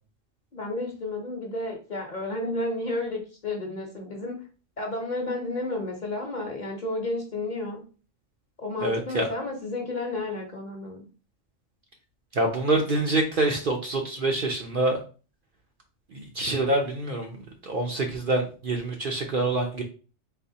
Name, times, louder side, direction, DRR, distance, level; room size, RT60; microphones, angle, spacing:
voice 1, 0.5-4.4 4.8-7.8 8.6-11.0, left 2 dB, 40° left, 1 dB, 1.0 m, -31 dB
voice 2, 8.8-9.3 12.3-15.0 16.1-19.8, right 2 dB, 55° right, 2 dB, 0.7 m, -26 dB
4.1 x 3.6 x 2.7 m, 0.36 s
omnidirectional pair, 1.3 m